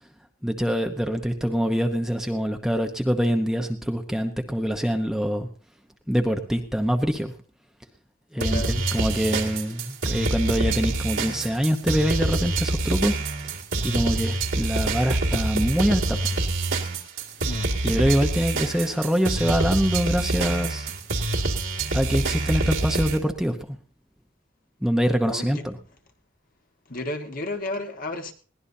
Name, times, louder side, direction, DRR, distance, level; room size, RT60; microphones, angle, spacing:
voice 1, 0.4-5.5 6.1-7.3 8.3-13.1 13.8-16.2 17.8-20.9 21.9-23.6 24.8-25.8, equal, ahead, 0.9 m, -24 dB
voice 2, 8.4-8.8 17.4-17.7 25.2-25.6 26.9-28.3, left 2 dB, 45° left, 1.6 m, -32 dB
sound 1, 8.4-23.2, right 2 dB, 70° right, 2.3 m, -26 dB
21.5 x 17.5 x 2.8 m
head